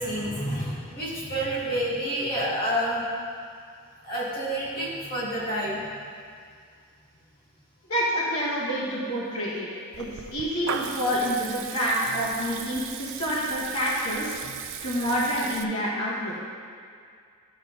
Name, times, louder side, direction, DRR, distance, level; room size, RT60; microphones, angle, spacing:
voice 1, 0.0-3.0 4.0-5.8, equal, 45° left, -7 dB, 2.0 m, -29 dB
voice 2, 7.9-9.7 10.0-14.3 14.8-16.4, equal, 75° left, -8 dB, 1.9 m, -27 dB
Water tap faucet / Liquid, 9.9-15.6, right 7 dB, 60° right, 0.4 m, -37 dB
11.0 x 4.1 x 4.0 m, 2.2 s
head